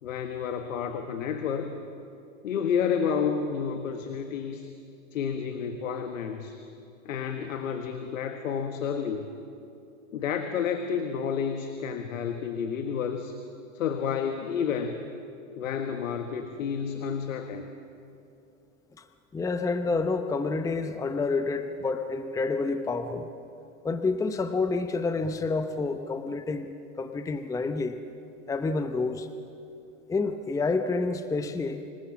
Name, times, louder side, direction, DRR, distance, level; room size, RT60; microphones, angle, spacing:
voice 1, 0.0-1.7 2.4-4.7 5.1-6.6 7.0-9.3 10.1-13.4 13.7-15.0 15.6-17.7, left 7 dB, 85° left, 7 dB, 1.6 m, -30 dB
voice 2, 19.3-23.3 23.8-28.0 28.5-29.3 30.1-31.8, left 3 dB, 10° left, 9 dB, 0.8 m, -28 dB
26.0 x 18.5 x 7.4 m, 2.7 s
hypercardioid pair, 125°, 39 cm